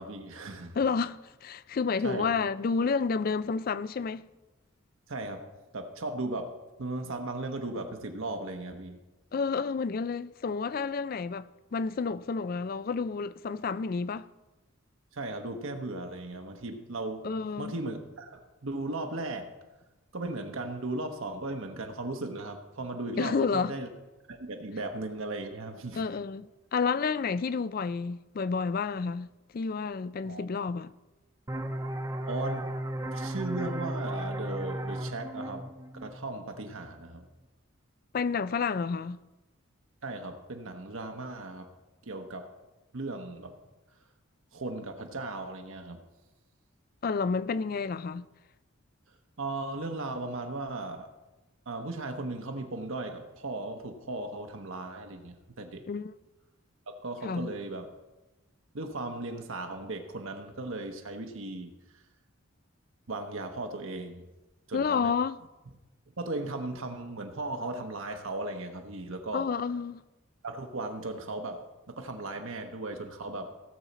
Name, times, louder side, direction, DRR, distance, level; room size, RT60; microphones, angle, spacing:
voice 1, 0.0-0.8 2.0-2.3 5.1-5.5 5.7-6.5 6.8-9.0 15.1-17.3 17.6-19.5 20.1-23.9 24.3-26.0 30.2-30.5 32.3-32.7 33.1-35.7 36.0-37.2 40.0-41.7 42.0-42.5 42.9-43.6 44.5-46.0 49.4-51.1 51.7-55.8 56.9-57.9 58.7-62.0 63.1-64.3 64.7-65.1 66.2-69.5 70.4-73.5, right 2 dB, 70° right, 1.0 m, -37 dB
voice 2, 0.8-4.3 9.3-14.3 17.2-17.7 23.2-23.7 25.9-30.9 38.1-39.2 47.0-48.3 55.9-56.1 57.2-57.5 64.7-65.4 69.3-70.0, left 5 dB, 40° left, 0.3 m, -30 dB
sound 1, 31.5-36.9, right 1 dB, 15° right, 0.5 m, -35 dB
17.0 x 7.2 x 4.1 m
head